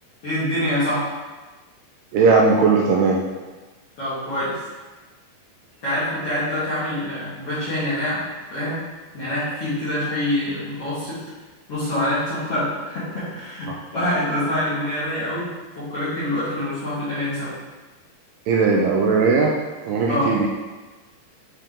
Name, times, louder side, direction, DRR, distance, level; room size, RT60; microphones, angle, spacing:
voice 1, 0.2-1.1 4.0-4.6 5.8-8.3 8.5-8.8 9.1-11.2 11.7-15.5 15.8-17.5 20.1-20.4, left 1 dB, 50° left, -12 dB, 2.0 m, -25 dB
voice 2, 2.1-3.2 18.5-19.5 19.8-20.5, right 4 dB, 80° right, -2 dB, 2.4 m, -18 dB
9.9 x 3.4 x 3.7 m, 1.3 s
omnidirectional pair, 5.0 m